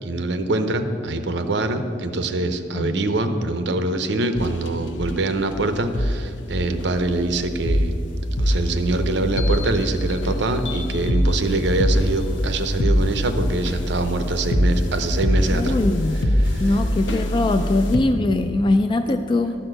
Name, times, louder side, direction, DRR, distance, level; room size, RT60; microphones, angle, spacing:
voice 1, 0.0-8.0 8.4-15.8 16.1-16.8, right 2 dB, 70° right, 9 dB, 0.7 m, -24 dB
sound 1, 4.4-4.7 4.9-5.1 5.9-6.1 6.8-18.0, equal, 85° left, 0.8 m, -23 dB
voice 2, 15.5-16.2 16.6-19.6, left 2 dB, 25° left, 8 dB, 0.3 m, -21 dB
12.0 x 4.3 x 7.8 m, 2.5 s
head